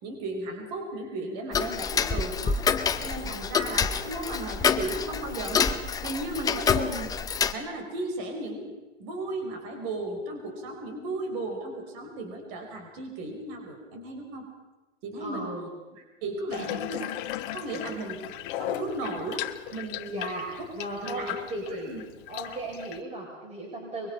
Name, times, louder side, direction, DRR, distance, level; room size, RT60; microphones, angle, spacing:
voice 1, 0.0-2.6 3.0-7.1 7.5-8.7 9.0-14.5 15.0-15.5 15.9-17.1 17.5-18.3 18.6-19.5 19.7-20.2 20.6-20.7 21.0-22.0, right 2 dB, 40° right, 4 dB, 4.9 m, -35 dB
Tick-tock, 1.5-7.5, left 6 dB, 10° left, 0.6 m, -27 dB
voice 2, 15.2-15.7 16.6-16.8 20.1-21.9 22.3-24.1, right 1 dB, 15° right, -2 dB, 6.6 m, -36 dB
Water tap faucet / Bathtub (filling or washing), 16.5-23.0, left 13 dB, 45° left, 1.2 m, -37 dB
24.0 x 22.5 x 5.7 m, 1.1 s
hypercardioid pair, 120°, 37 cm